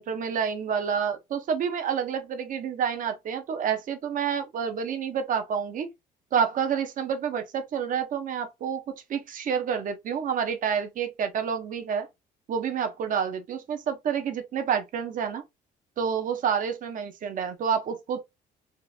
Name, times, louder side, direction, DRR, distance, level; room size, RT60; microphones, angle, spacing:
voice 1, 0.0-5.9 6.3-8.8 9.1-12.1 12.5-15.4 16.0-18.2, right 7 dB, 50° right, 0.9 m, -28 dB
3.7 x 2.6 x 2.7 m
cardioid pair, 110°, 17 cm